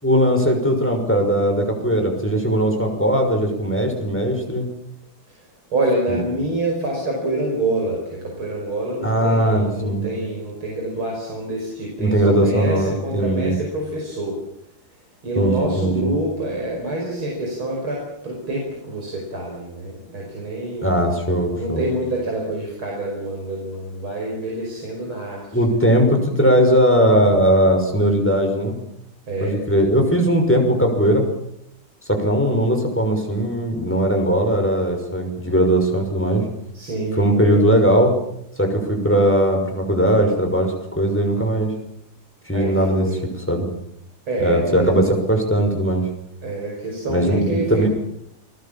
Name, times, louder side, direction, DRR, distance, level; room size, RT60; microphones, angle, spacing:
voice 1, 0.0-4.7 6.1-6.2 9.0-10.0 12.0-13.6 15.4-16.1 20.8-21.8 25.5-28.7 29.4-31.3 32.1-36.4 37.2-38.1 38.6-41.7 42.5-43.1 43.5-43.7 44.4-46.1 47.1-47.9, right 1 dB, 5° left, 3 dB, 5.8 m, -19 dB
voice 2, 5.7-14.4 15.2-20.9 21.5-25.8 29.3-29.6 36.7-37.7 42.5-43.2 44.3-45.0 46.4-47.9, right 1 dB, 75° right, -1 dB, 6.2 m, -26 dB
28.5 x 19.5 x 7.4 m, 0.77 s
omnidirectional pair, 2.3 m